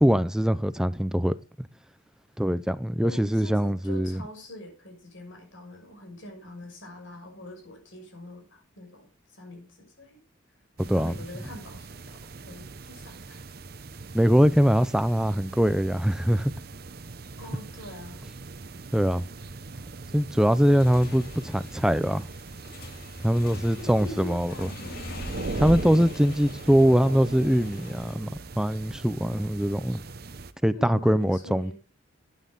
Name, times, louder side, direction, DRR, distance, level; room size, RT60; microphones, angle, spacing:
voice 1, 0.0-1.7 2.4-4.2 10.8-11.1 14.1-16.5 18.9-19.2 20.1-22.3 23.2-24.7 25.6-30.0 30.6-31.7, equal, 5° right, 0.5 m, -23 dB
voice 2, 3.0-10.2 11.0-13.5 17.4-18.3 23.8-25.4 30.7-31.7, left 1 dB, 80° left, 6.4 m, -44 dB
sound 1, 10.8-30.5, right 3 dB, 50° right, 0.8 m, -40 dB
Motorcycle / Engine, 20.6-28.1, left 2 dB, 50° left, 2.0 m, -44 dB
12.5 x 9.5 x 3.9 m
head